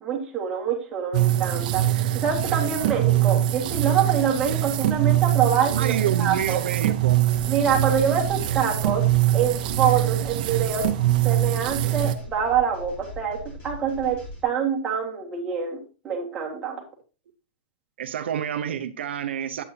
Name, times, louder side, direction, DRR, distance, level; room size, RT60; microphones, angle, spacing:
voice 1, 0.0-6.6 7.5-9.0 9.3-10.8 11.2-13.4 13.6-15.8 16.0-16.8, right 7 dB, 15° right, -2 dB, 1.8 m, -25 dB
sound 1, 1.1-12.2, right 13 dB, 45° right, 0.8 m, -23 dB
voice 2, 5.7-7.3 18.0-19.6, right 9 dB, 75° right, 7 dB, 0.8 m, -28 dB
sound 2, 7.3-14.4, equal, 25° left, 3.3 m, -40 dB
8.5 x 8.1 x 2.8 m, 0.34 s
supercardioid pair, 165°, 6 cm